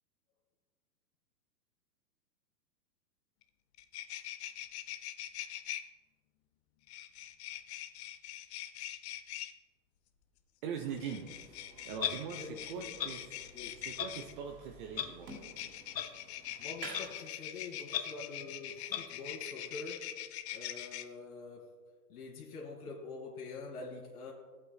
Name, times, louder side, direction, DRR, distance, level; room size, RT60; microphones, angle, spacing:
sound 1, 3.4-3.5 3.7-5.8 6.9-9.5 10.9-14.3 15.3-21.0, left 13 dB, 45° left, 0.6 m, -43 dB
voice 1, 10.6-13.4 13.7-15.4, right 6 dB, 30° right, 5 dB, 0.6 m, -42 dB
sound 2, 10.7-17.2, right 3 dB, 50° right, 2.8 m, -52 dB
Clock, 12.0-12.1 13.0-13.1 14.0-14.1 14.9-15.1 15.9-16.1 16.9-17.0 17.9-18.0 18.9-19.0, left 10 dB, 90° left, 1.1 m, -33 dB
voice 2, 12.4-13.1 13.5-13.7 16.6-20.1 20.5-21.7 22.1-24.3, left 3 dB, 65° left, -4 dB, 2.4 m, -46 dB
14.0 x 8.5 x 2.3 m, 1.5 s
hypercardioid pair, 125°, 49 cm